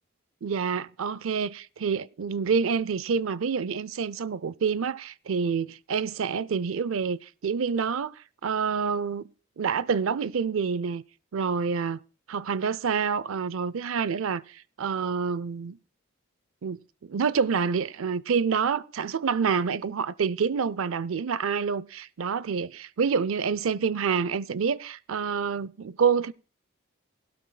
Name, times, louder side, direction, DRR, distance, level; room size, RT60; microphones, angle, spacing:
voice 1, 0.4-9.3 9.6-11.0 11.3-12.0 12.3-15.8 16.6-26.3, right 6 dB, 80° right, 0.5 m, -27 dB
19.5 x 12.5 x 2.3 m
head